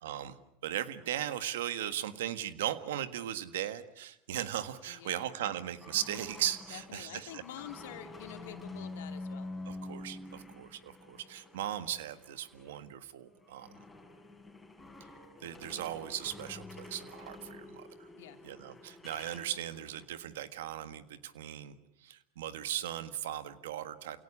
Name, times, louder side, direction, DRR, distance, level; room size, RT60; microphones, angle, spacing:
voice 1, 0.0-7.4 9.6-13.7 15.4-18.1 18.4-24.2, right 11 dB, 90° right, 12 dB, 1.6 m, -38 dB
sound 1, 4.5-12.9 13.2-20.0, left 2 dB, 10° left, 5.3 m, -48 dB
voice 2, 4.9-5.3 6.7-9.5 18.1-18.4, left 11 dB, 85° left, 6 dB, 2.8 m, -47 dB
29.0 x 18.0 x 8.6 m, 0.82 s
supercardioid pair, 115°, 0 cm